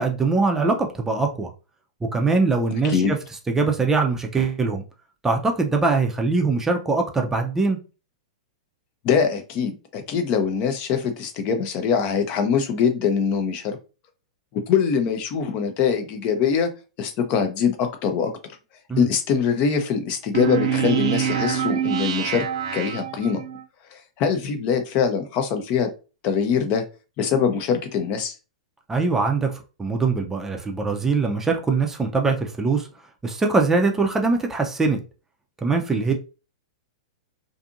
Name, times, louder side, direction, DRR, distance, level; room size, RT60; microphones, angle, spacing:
voice 1, 0.0-1.5 2.1-3.2 3.5-4.8 5.2-7.8 18.9-19.1 28.9-32.9 33.2-35.0 35.6-36.1, right 4 dB, 10° right, 3 dB, 0.4 m, -22 dB
voice 2, 9.0-13.8 14.5-16.7 17.0-18.3 19.0-22.4 22.7-23.4 23.9-25.9 26.2-26.8 27.2-28.3, left 6 dB, 40° left, 7 dB, 0.5 m, -23 dB
sound 1, 20.3-23.6, right 9 dB, 70° right, 0.4 m, -25 dB
2.6 x 2.5 x 2.5 m, 0.32 s
hypercardioid pair, 110°, 3 cm